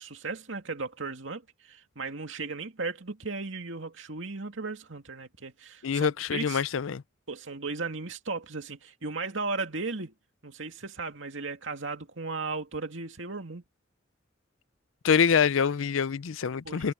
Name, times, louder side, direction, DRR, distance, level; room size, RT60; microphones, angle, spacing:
voice 1, 0.0-6.6 7.3-10.1 10.4-13.6 16.6-16.9, right 3 dB, 75° right, 2.5 m, -36 dB
voice 2, 5.8-7.0 15.0-16.9, left 6 dB, 90° left, 0.5 m, -25 dB
head